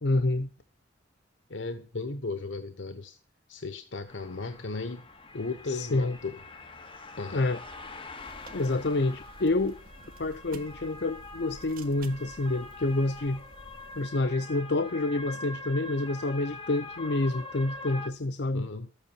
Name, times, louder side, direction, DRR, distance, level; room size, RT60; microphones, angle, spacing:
voice 1, 0.0-0.5 5.7-6.2 7.3-7.6 8.5-9.8 10.2-13.4 14.0-18.7, left 2 dB, 60° left, 0.6 m, -28 dB
voice 2, 1.5-3.2 3.5-5.0 5.3-6.4 7.2-7.4 18.5-18.9, left 3 dB, 80° left, 1.0 m, -36 dB
sound 1, 4.1-18.1, left 2 dB, 25° left, 1.7 m, -44 dB
sound 2, 8.2-14.1, right 2 dB, 50° right, 1.4 m, -51 dB
13.0 x 8.4 x 7.0 m
head